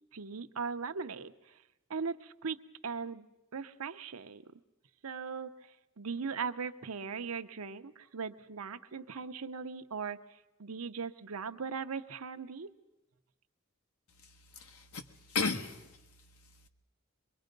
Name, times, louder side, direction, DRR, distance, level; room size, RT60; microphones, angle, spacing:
voice 1, 0.1-1.6 1.9-2.6 2.8-3.3 3.5-4.5 5.0-5.7 6.0-10.2 10.6-12.7, right 5 dB, 85° right, 9 dB, 0.8 m, -39 dB
voice 2, 14.2-16.0, left 4 dB, 90° left, 6 dB, 1.3 m, -36 dB
23.5 x 21.5 x 5.3 m, 0.96 s
head